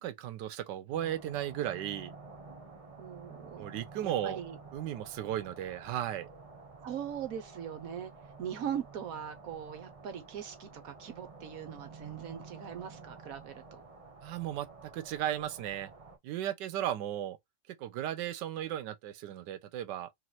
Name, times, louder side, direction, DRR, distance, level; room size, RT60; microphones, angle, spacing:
voice 1, 0.0-2.1 3.6-4.4 4.7-6.3 14.2-14.7 14.9-15.9 16.2-17.4 17.7-20.1, right 11 dB, 80° right, 1.2 m, -35 dB
sound 1, 0.9-16.2, right 4 dB, 35° right, 0.5 m, -51 dB
voice 2, 3.0-3.7 4.0-4.6 6.8-8.1 8.4-13.8, right 9 dB, 65° right, 0.9 m, -40 dB
3.2 x 3.0 x 4.0 m
omnidirectional pair, 1.9 m